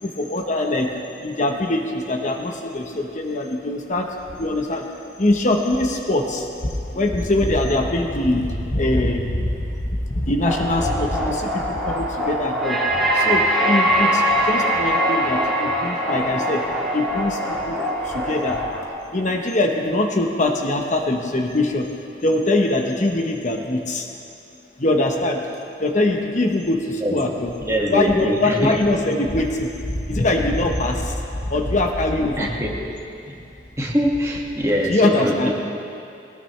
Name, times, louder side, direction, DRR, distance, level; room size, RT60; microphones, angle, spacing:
voice 1, 0.0-0.9 1.2-4.9 5.2-12.8 13.1-16.6 16.9-18.6 19.1-21.9 22.2-24.1 24.8-25.4 25.8-27.5 27.9-32.5 34.9-35.5, left 2 dB, 45° left, 2 dB, 1.1 m, -22 dB
sound 1, 10.4-18.8, equal, ahead, 3.1 m, -22 dB
voice 2, 27.6-28.8 32.4-32.7 33.3-33.4 33.8-35.5, equal, 15° right, -3 dB, 1.9 m, -22 dB
21.0 x 18.5 x 3.3 m, 2.6 s
head